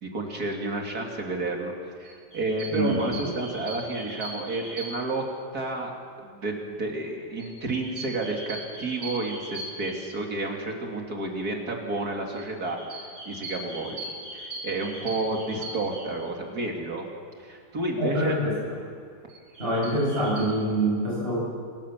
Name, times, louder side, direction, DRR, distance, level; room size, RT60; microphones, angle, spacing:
voice 1, 0.0-1.7 2.0-5.2 5.5-5.9 6.2-14.0 14.3-17.0 17.4-18.4, right 2 dB, 50° right, 1 dB, 3.1 m, -31 dB
sound 1, 2.0-5.3 7.4-10.5 12.3-16.1 19.3-20.4, right 2 dB, 75° right, 5.7 m, -40 dB
voice 2, 2.7-3.3 15.3-15.4 18.0-18.8 19.6-21.4, right 1 dB, 30° right, -4 dB, 8.2 m, -26 dB
27.5 x 16.0 x 7.4 m, 2.2 s
omnidirectional pair, 2.0 m